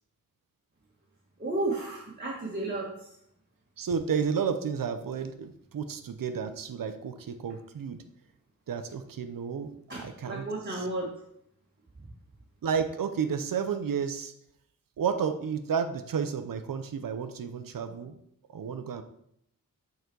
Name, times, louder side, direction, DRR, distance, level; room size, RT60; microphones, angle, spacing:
voice 1, 1.4-3.2 9.9-11.2, right 2 dB, 30° right, -5 dB, 1.6 m, -33 dB
voice 2, 3.8-8.0 8.7-10.8 12.6-14.3 15.0-18.2 18.5-19.0, right 6 dB, 80° right, 9 dB, 0.7 m, -32 dB
9.2 x 4.1 x 4.6 m, 0.73 s
wide cardioid pair, 120°, 33 cm